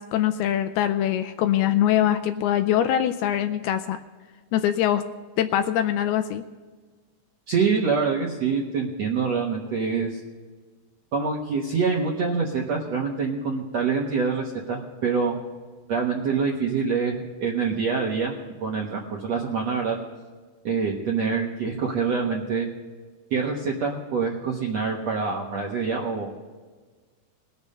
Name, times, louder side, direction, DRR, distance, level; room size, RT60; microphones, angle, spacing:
voice 1, 0.0-4.0 4.5-5.0 5.4-6.4, left 11 dB, 85° left, 9 dB, 2.4 m, -23 dB
voice 2, 7.5-10.2 11.1-15.4 15.9-20.0 20.6-22.7 23.3-26.3, right 5 dB, 70° right, -1 dB, 1.6 m, -25 dB
20.5 x 7.0 x 5.4 m, 1.4 s
omnidirectional pair, 4.9 m